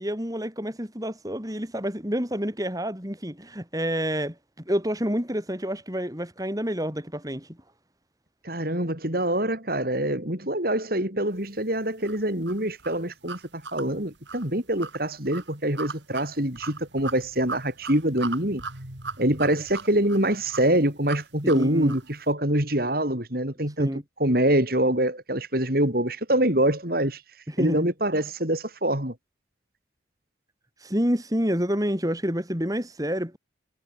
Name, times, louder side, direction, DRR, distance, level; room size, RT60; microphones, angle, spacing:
voice 1, 0.0-4.4 4.7-7.6 21.4-22.0 23.8-24.0 27.5-27.9 30.8-33.4, equal, 20° right, 5.2 m, -28 dB
voice 2, 8.4-18.6 19.2-23.9 24.2-27.2 27.6-29.1, right 1 dB, 50° right, 5.3 m, -25 dB
sound 1, 12.0-22.1, right 4 dB, 75° right, 4.2 m, -39 dB
head